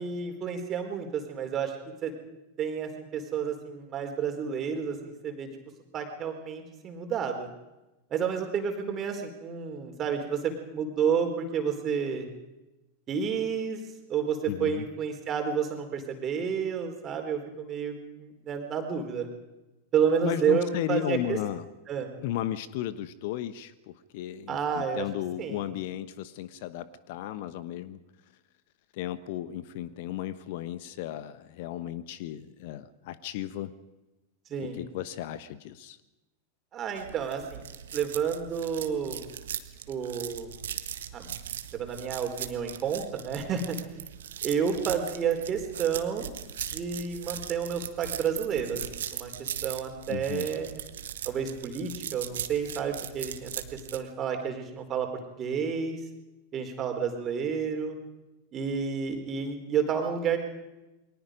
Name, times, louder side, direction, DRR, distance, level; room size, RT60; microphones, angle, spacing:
voice 1, 0.0-2.1 2.6-5.5 5.9-7.5 8.1-12.3 13.1-13.8 14.1-19.3 19.9-21.4 21.9-22.1 24.5-25.1 25.4-25.6 34.5-34.8 36.7-37.7 37.9-39.2 39.9-40.5 41.1-41.3 41.7-43.8 44.4-46.3 46.7-50.8 51.3-55.1 55.4-56.0 56.5-58.0 58.5-60.4, right 7 dB, 30° right, 5 dB, 4.2 m, -30 dB
voice 2, 14.5-14.9 20.2-21.6 22.2-28.0 28.9-33.7 34.6-36.0 50.1-50.5, left 12 dB, 50° left, 15 dB, 1.1 m, -35 dB
sound 1, 37.0-54.0, right 9 dB, 60° right, 1.5 m, -39 dB
28.5 x 23.0 x 5.2 m, 1.0 s
figure-of-eight pair, 90°, 0 cm